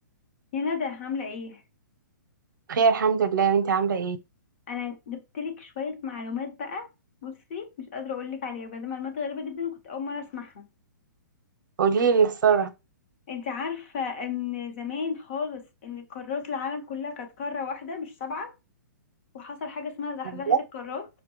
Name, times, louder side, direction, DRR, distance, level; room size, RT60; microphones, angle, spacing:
voice 1, 0.5-1.6 4.7-6.9 7.2-10.7 13.3-18.5 19.3-21.1, left 6 dB, 35° left, 0.9 m, -33 dB
voice 2, 2.7-4.2 11.8-12.7 20.5-20.6, right 6 dB, 75° right, 0.7 m, -21 dB
5.4 x 2.2 x 2.9 m
hypercardioid pair, 165°, 11 cm